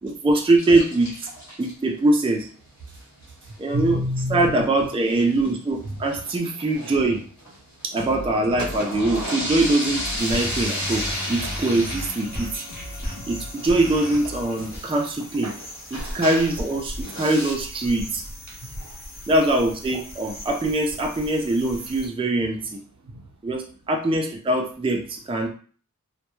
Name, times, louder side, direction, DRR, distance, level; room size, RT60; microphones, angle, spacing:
voice 1, 0.0-1.1 1.6-2.5 3.6-4.0 4.3-7.2 7.9-12.6 13.3-15.5 15.9-18.2 19.3-22.8 23.4-25.5, right 2 dB, 15° right, 2 dB, 0.4 m, -22 dB
sound 1, 0.6-1.7 2.9-3.2 3.5-3.6 3.8-3.9 4.2-4.3 4.9-5.5 6.0-7.8 8.3-16.7 17.0-17.5, equal, 55° left, 0.8 m, -34 dB
voice 2, 3.4-4.5 13.0-13.4 15.4-15.6 18.5-19.1 23.0-23.4, left 1 dB, 65° right, 1 dB, 0.6 m, -31 dB
sound 2, 7.9-14.7, left 1 dB, 75° left, 0.5 m, -38 dB
sound 3, 10.2-22.1, equal, 30° left, 0.8 m, -37 dB
2.1 x 2.1 x 2.9 m, 0.43 s
wide cardioid pair, 45°, 33 cm